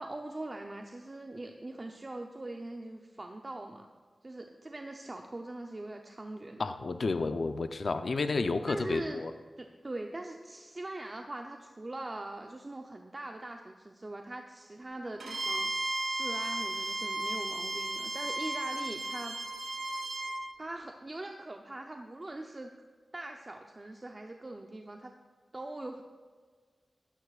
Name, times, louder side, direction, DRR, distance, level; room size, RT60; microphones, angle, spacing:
voice 1, 0.0-3.9 4.2-6.7 8.7-9.2 9.6-15.7 16.1-19.4 20.6-22.7 23.1-25.1 25.5-26.0, right 2 dB, 35° right, 3 dB, 0.7 m, -42 dB
voice 2, 6.6-9.3, left 3 dB, 65° left, 8 dB, 0.7 m, -31 dB
Bowed string instrument, 15.2-20.4, right 2 dB, 80° right, 2.8 m, -34 dB
14.0 x 13.0 x 2.5 m, 1.5 s
cardioid pair, 55°, 0 cm